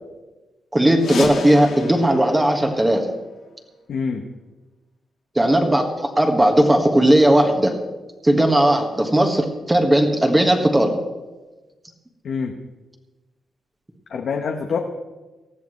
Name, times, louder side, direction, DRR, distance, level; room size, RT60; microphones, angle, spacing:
voice 1, 0.7-3.0 5.3-7.7 8.2-10.9, right 1 dB, 15° right, 4 dB, 1.6 m, -17 dB
sound 1, 0.9-3.6, left 5 dB, 80° left, 1.7 m, -33 dB
voice 2, 3.9-4.2 12.2-12.5 14.1-14.8, left 5 dB, 60° left, 2 dB, 1.1 m, -25 dB
19.0 x 13.5 x 3.2 m, 1.2 s
cardioid pair, 120°, 0 cm